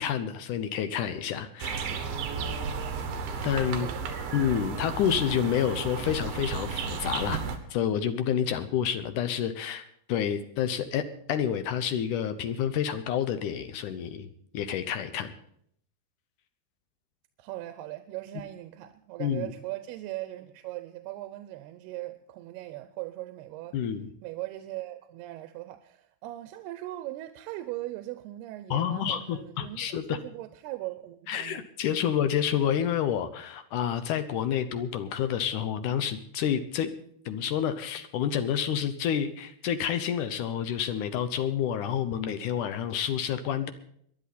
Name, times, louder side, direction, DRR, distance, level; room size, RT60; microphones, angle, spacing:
voice 1, 0.0-2.0 3.4-3.9 4.3-7.4 7.7-14.3 14.5-15.3 19.2-19.5 23.7-24.1 28.7-30.2 31.3-36.9 37.3-43.7, left 9 dB, 70° left, 2.0 m, -29 dB
sound 1, 1.6-7.6, right 5 dB, 70° right, 3.4 m, -33 dB
voice 2, 3.7-4.4 17.4-23.8 24.2-31.6, right 16 dB, 90° right, 2.7 m, -39 dB
21.5 x 11.5 x 4.2 m
omnidirectional pair, 4.5 m